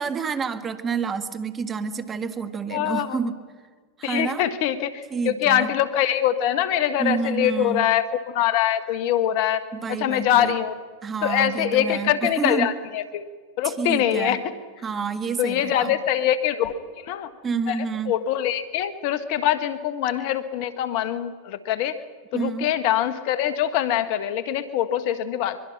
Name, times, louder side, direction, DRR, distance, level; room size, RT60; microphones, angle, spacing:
voice 1, 0.0-3.4 4.0-4.5 5.1-5.7 7.0-7.8 9.7-10.5 11.0-12.7 13.6-14.4 14.8-16.0 17.4-18.2 22.3-22.7, right 5 dB, 25° right, 9 dB, 1.9 m, -28 dB
voice 2, 2.7-3.2 4.0-9.6 10.0-10.7 11.2-13.3 13.6-14.4 15.4-17.3 17.7-22.0 22.3-25.6, left 11 dB, 55° left, 12 dB, 1.4 m, -24 dB
23.0 x 23.0 x 6.0 m, 1.5 s
hypercardioid pair, 100°, 0 cm